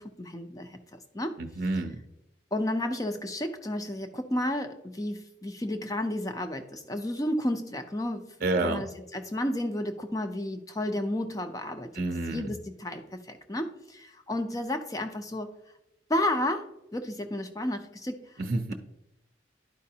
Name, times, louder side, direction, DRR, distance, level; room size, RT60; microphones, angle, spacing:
voice 1, 0.0-1.3 2.5-8.3 8.6-11.9 12.3-15.5 16.1-18.3, left 1 dB, 20° left, 7 dB, 0.6 m, -32 dB
voice 2, 1.4-2.0 8.4-8.8 11.9-12.5 18.4-18.7, right 2 dB, 50° right, 7 dB, 0.6 m, -29 dB
11.5 x 5.1 x 2.8 m, 0.84 s
head